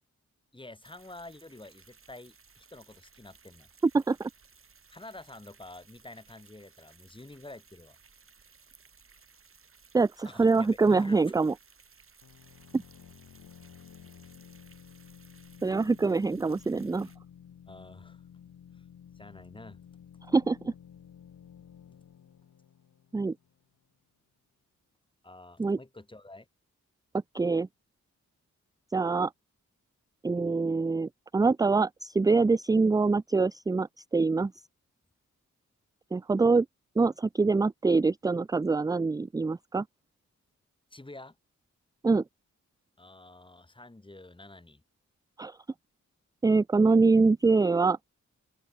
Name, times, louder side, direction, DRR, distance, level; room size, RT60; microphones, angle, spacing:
voice 1, 0.5-3.7 4.9-8.0 10.2-11.3 15.8-15.9 17.0-17.1 17.7-18.2 18.7-18.8 19.1-19.8 25.2-26.5 40.9-41.4 43.0-44.8, left 2 dB, 15° left, 4.3 m, -48 dB
sound 1, 0.8-17.2, right 5 dB, 45° right, 3.2 m, -59 dB
voice 2, 3.8-4.3 9.9-11.5 12.7-12.8 15.6-17.1 20.3-20.7 23.1-23.3 25.6-25.8 27.3-27.7 28.9-29.3 30.2-34.5 36.1-36.7 37.0-39.8 42.0-42.2 45.4-45.6 46.4-48.0, right 3 dB, 15° right, 0.3 m, -24 dB
sound 2, 12.2-23.7, left 8 dB, 80° left, 2.0 m, -53 dB
open air
wide cardioid pair, 110°, 30 cm